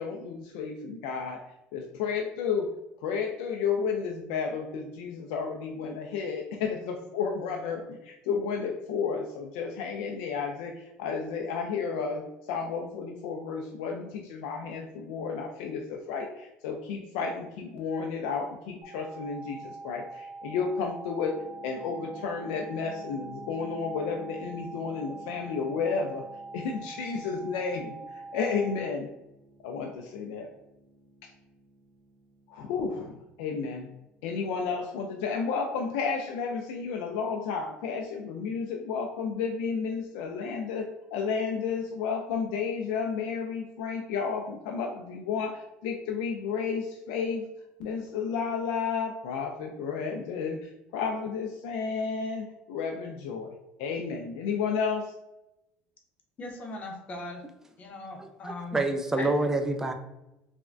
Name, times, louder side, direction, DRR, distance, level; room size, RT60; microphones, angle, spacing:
voice 1, 0.0-1.4 1.7-2.7 3.0-21.4 21.6-26.2 26.5-28.0 28.3-29.1 29.6-30.5 32.5-33.9 34.2-47.5 47.8-55.1, left 5 dB, 85° left, 1 dB, 0.3 m, -32 dB
sound 1, 18.8-28.8, right 3 dB, 40° right, 1.0 m, -43 dB
sound 2, 21.3-36.1, right 2 dB, 55° right, 1.2 m, -55 dB
voice 2, 56.4-57.4 57.8-58.8 59.2-59.3, left 2 dB, 40° left, 2 dB, 0.7 m, -39 dB
voice 3, 58.2-59.9, right 2 dB, 10° right, 5 dB, 0.4 m, -28 dB
3.3 x 2.1 x 2.4 m, 0.90 s
supercardioid pair, 105°, 4 cm